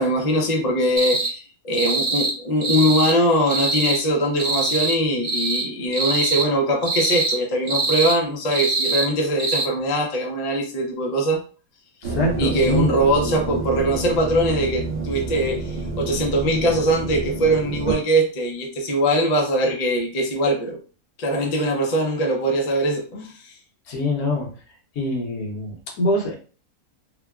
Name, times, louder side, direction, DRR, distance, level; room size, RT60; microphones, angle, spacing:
voice 1, 0.0-11.4 12.4-20.8 21.2-23.5, right 1 dB, 50° left, 1 dB, 0.4 m, -22 dB
sound 1, 1.0-1.3 1.7-2.3 2.6-3.1 3.5-4.0 4.4-5.0 5.2-5.6 5.9-6.5 6.8-7.4 7.7-8.2 8.5-9.1 9.4-9.6, right 3 dB, 45° right, 0.7 m, -23 dB
voice 2, 12.0-12.9 23.9-24.5 24.9-26.3, left 1 dB, 80° left, -1 dB, 1.4 m, -24 dB
sound 2, 12.0-17.9, right 3 dB, 60° right, 1.3 m, -28 dB
3.2 x 2.2 x 2.3 m, 0.37 s
omnidirectional pair, 1.6 m